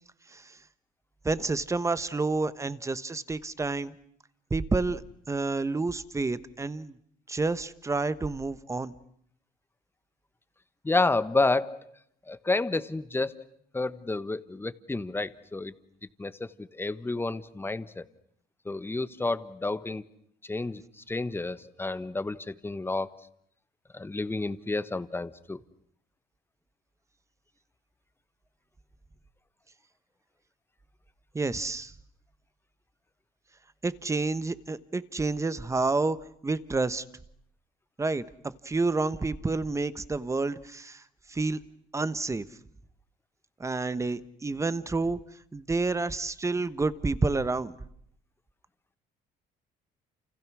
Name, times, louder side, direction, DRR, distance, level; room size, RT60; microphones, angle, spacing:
voice 1, 1.2-3.9 4.5-5.0 5.3-6.9 7.3-8.9 31.3-31.9 33.8-36.2 36.4-37.0 38.0-41.0 41.3-41.6 41.9-42.4 43.6-45.2 45.5-47.7, right 3 dB, 15° right, 15 dB, 1.2 m, -29 dB
voice 2, 10.8-11.9 12.3-13.4 13.7-15.7 16.2-18.0 18.6-20.0 20.4-23.1 23.9-25.6, left 3 dB, 15° left, 14 dB, 1.2 m, -30 dB
29.5 x 28.5 x 6.3 m, 0.69 s
cardioid pair, 110°, 17 cm